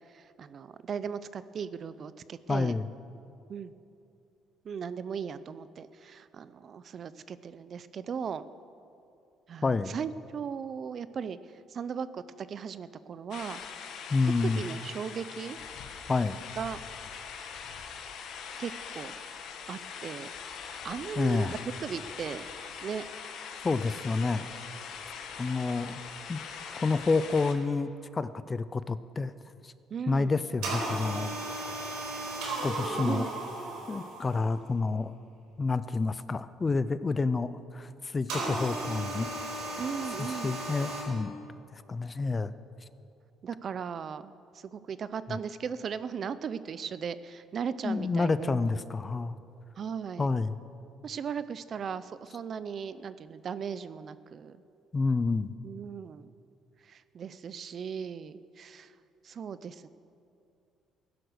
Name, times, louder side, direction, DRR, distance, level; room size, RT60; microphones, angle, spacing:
voice 1, 0.1-2.8 3.5-3.7 4.6-8.5 9.5-11.4 11.7-13.6 14.4-15.6 16.6-16.8 18.6-19.1 19.7-20.3 20.6-21.5 21.8-22.4 22.8-23.0 29.9-30.3 33.0-33.3 39.8-40.6 43.4-44.3 44.7-48.7 49.8-50.3 51.0-54.6 55.6-56.3 56.9-58.9 59.2-59.9, right 7 dB, 45° right, 15 dB, 0.5 m, -37 dB
voice 2, 2.5-2.9 9.6-10.0 14.1-14.6 16.1-16.4 21.2-21.6 23.6-24.4 25.4-26.0 26.3-26.4 26.8-29.3 29.6-29.7 30.1-31.3 32.6-33.3 33.9-35.1 35.6-39.3 40.2-41.3 41.7-42.5 45.3-45.4 47.8-49.3 50.2-50.6 54.9-55.5, left 3 dB, 25° left, 15 dB, 0.4 m, -29 dB
sound 1, 13.3-27.5, left 6 dB, 65° left, 1.5 m, -42 dB
sound 2, 30.6-34.6 38.3-41.0, right 2 dB, 85° right, 4.3 m, -35 dB
15.5 x 11.0 x 6.5 m, 2.5 s
cardioid pair, 125°, 0 cm